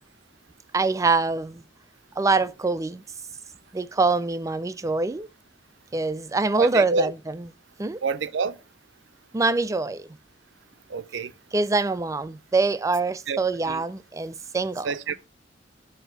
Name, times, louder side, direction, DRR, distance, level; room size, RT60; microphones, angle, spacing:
voice 1, 0.7-1.6 2.2-3.0 3.7-5.3 5.9-7.5 7.8-8.0 9.3-10.1 11.5-14.9, right 3 dB, 15° right, 0.3 m, -24 dB
voice 2, 6.6-7.1 8.0-8.6 10.9-11.3 13.3-13.4 13.7-13.8 14.8-15.2, right 4 dB, 70° right, 0.5 m, -27 dB
8.1 x 2.8 x 6.0 m
head